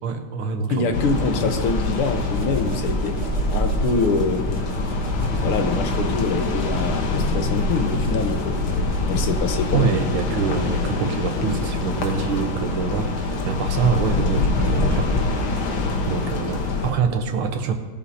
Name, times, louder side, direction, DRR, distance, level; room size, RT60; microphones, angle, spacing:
voice 1, 0.0-1.0 9.7-15.1 16.1-17.7, right 6 dB, 80° right, 5 dB, 1.8 m, -25 dB
voice 2, 0.7-3.2 3.5-4.4 5.4-8.6 9.1-10.0, left 4 dB, 90° left, 6 dB, 2.0 m, -25 dB
sound 1, 0.9-16.9, left 3 dB, 75° left, 2.0 m, -25 dB
sound 2, 1.5-9.8, right 3 dB, 55° right, 2.0 m, -29 dB
18.0 x 12.0 x 2.8 m, 1.3 s
omnidirectional pair, 2.4 m